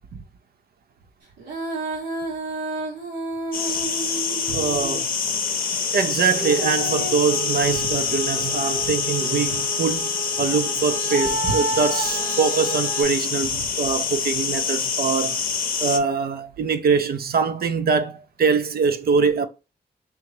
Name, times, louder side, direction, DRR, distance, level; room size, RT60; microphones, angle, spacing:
Female singing, 1.4-5.1 6.3-13.0, right 2 dB, 90° right, 1.5 m, -31 dB
sound 1, 3.5-16.0, left 5 dB, 55° left, 0.6 m, -26 dB
voice 1, 4.5-5.1 5.9-15.4 15.8-19.5, right 5 dB, 60° right, 0.5 m, -23 dB
3.5 x 2.7 x 2.9 m
cardioid pair, 55°, 17 cm